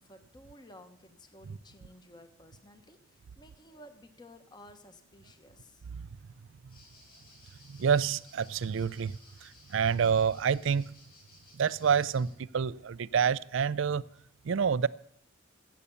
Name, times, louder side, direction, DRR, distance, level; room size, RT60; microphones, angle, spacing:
voice 1, 0.0-5.8, left 1 dB, 20° left, 1.1 m, -54 dB
sound 1, 6.7-12.3, left 2 dB, 45° left, 7.0 m, -58 dB
voice 2, 7.7-10.9 11.5-14.0 14.4-14.9, right 6 dB, 65° right, 0.4 m, -28 dB
15.5 x 8.3 x 7.0 m
head